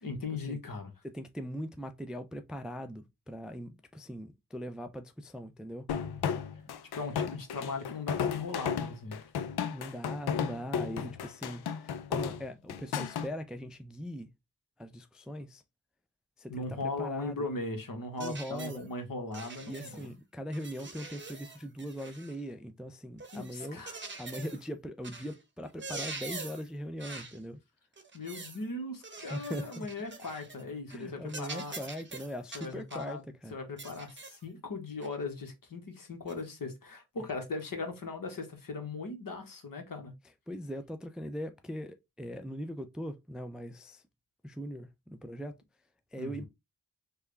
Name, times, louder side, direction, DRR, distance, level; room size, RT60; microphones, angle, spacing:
voice 1, 0.0-0.9 6.9-9.2 16.5-20.1 23.3-24.0 28.1-31.7 32.5-33.2 33.5-40.1 46.2-46.5, left 3 dB, 60° left, 1.1 m, -38 dB
voice 2, 1.0-5.9 9.7-14.3 14.8-15.6 16.4-17.5 18.2-18.8 19.7-23.8 24.2-27.6 29.3-29.9 30.9-33.6 40.5-44.0 44.4-45.6 46.1-46.4, equal, ahead, 0.3 m, -40 dB
sound 1, 5.9-13.3, left 7 dB, 80° left, 0.5 m, -34 dB
sound 2, 18.2-18.8 19.3-20.1 20.5-22.4 23.2-24.7 25.0-25.4 25.7-26.7 27.0-27.4 28.0-28.6 29.0-30.6 30.9-31.0 31.3-33.1 33.8-34.4 35.0-35.2 36.3-36.4, right 3 dB, 30° right, 0.8 m, -44 dB
3.4 x 2.3 x 3.2 m
cardioid pair, 40°, 38 cm